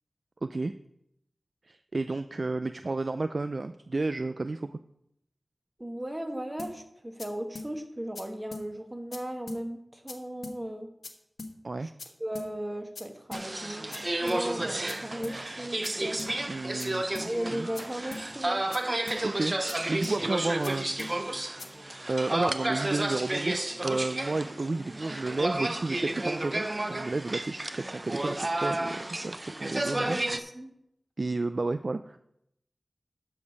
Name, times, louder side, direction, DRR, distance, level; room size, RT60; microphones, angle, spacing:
voice 1, 0.4-0.7 1.7-4.8 11.6-11.9 16.5-17.7 19.2-21.0 22.1-23.6 23.8-30.2 31.2-32.2, right 3 dB, 55° right, 11 dB, 0.3 m, -32 dB
voice 2, 5.8-10.9 11.8-11.9 12.2-16.4 17.2-18.6 29.7-30.7, right 1 dB, 20° right, 4 dB, 1.5 m, -36 dB
sound 1, 6.6-6.7 7.2-7.3 7.6-7.7 8.2-8.3 8.5-8.7 9.1-9.2 9.5-9.6 10.1-10.2 10.4-10.6 11.0-11.1 11.4-11.5 12.0-12.1 12.4-12.5 13.0-13.1 13.3-13.5 13.9-14.0 14.3-14.4 14.9-15.0 15.2-15.4 15.8-15.9 16.2-16.3 16.8-16.9 17.2-17.3 17.8-17.9 18.1-18.3 18.7-18.8 19.1-19.2 19.7-19.8 20.0-20.2 20.6-20.7 21.0-21.1 21.6-21.7, left 3 dB, 75° left, 1.1 m, -40 dB
sound 2, 13.3-30.4, right 1 dB, 35° right, 0.7 m, -32 dB
12.5 x 5.1 x 5.3 m, 0.77 s
wide cardioid pair, 55°, 0 cm